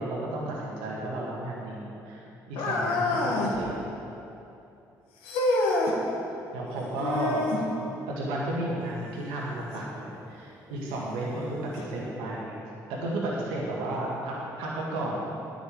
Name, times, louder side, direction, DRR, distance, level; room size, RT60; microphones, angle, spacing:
voice 1, 0.0-3.8 6.5-7.5 7.8-12.5 12.9-15.2, right 1 dB, 80° right, -4 dB, 2.0 m, -33 dB
sound 1, 2.6-3.6 5.2-6.0 7.0-7.7 9.7-9.9 10.7-10.8 11.8-11.9, left 2 dB, 75° left, 1.6 m, -26 dB
10.0 x 6.2 x 8.7 m, 2.8 s
hypercardioid pair, 50°, 9 cm